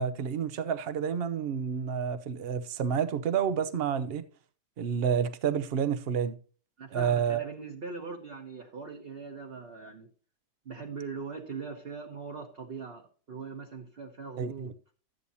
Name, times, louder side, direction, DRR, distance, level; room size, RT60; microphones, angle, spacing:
voice 1, 0.0-4.2 4.8-6.4 6.9-7.4 14.4-14.7, right 7 dB, 60° right, 0.6 m, -29 dB
voice 2, 6.8-10.1 10.6-14.7, right 5 dB, 40° right, 1.1 m, -41 dB
12.5 x 8.4 x 2.7 m
omnidirectional pair, 1.9 m